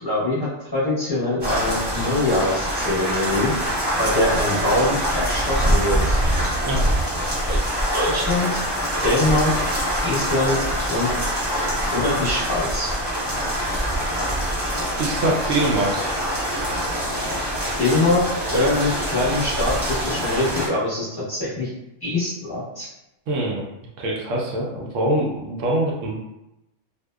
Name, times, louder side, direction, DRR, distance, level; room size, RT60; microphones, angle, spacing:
voice 1, 0.0-3.5 4.0-6.2 7.4-7.6 7.9-8.6 9.0-9.5 10.0-10.6 10.9-11.1 11.9-12.9 17.8-18.2 18.5-21.7 22.0-22.9, left 2 dB, 20° left, -10 dB, 0.9 m, -23 dB
sound 1, 1.4-20.7, equal, 25° right, 0.6 m, -24 dB
voice 2, 6.6-6.9 15.0-16.2 23.3-23.6 24.0-26.3, right 1 dB, 75° right, -2 dB, 0.9 m, -24 dB
2.8 x 2.0 x 2.2 m, 0.90 s
omnidirectional pair, 1.4 m